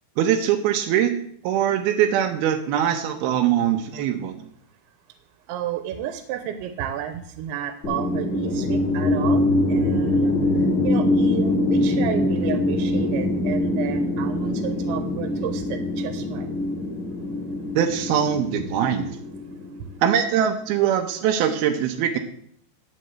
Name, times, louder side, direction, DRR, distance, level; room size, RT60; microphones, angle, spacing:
voice 1, 0.2-1.1 1.4-4.3 17.8-19.2 20.0-22.2, right 9 dB, 75° right, 4 dB, 2.5 m, -22 dB
voice 2, 5.5-10.3 10.8-16.5, right 10 dB, 90° right, 9 dB, 3.2 m, -32 dB
sound 1, 7.8-20.0, left 1 dB, 35° left, 1.1 m, -23 dB
11.0 x 6.6 x 8.0 m, 0.64 s
omnidirectional pair, 5.2 m